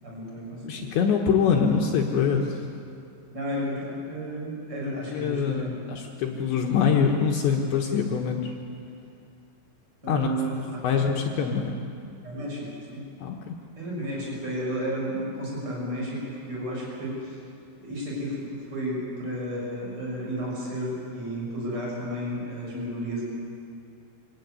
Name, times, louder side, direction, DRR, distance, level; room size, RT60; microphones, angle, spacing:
voice 1, 0.0-0.8 3.3-5.8 10.0-11.1 12.2-13.0 13.8-16.2 16.5-17.4 17.8-23.2, equal, 20° right, -4 dB, 7.1 m, -32 dB
voice 2, 0.6-2.6 5.1-8.5 10.1-10.3 10.8-11.7 13.2-13.5, left 6 dB, 70° left, 0 dB, 3.3 m, -24 dB
26.0 x 17.0 x 9.7 m, 2.5 s
omnidirectional pair, 6.0 m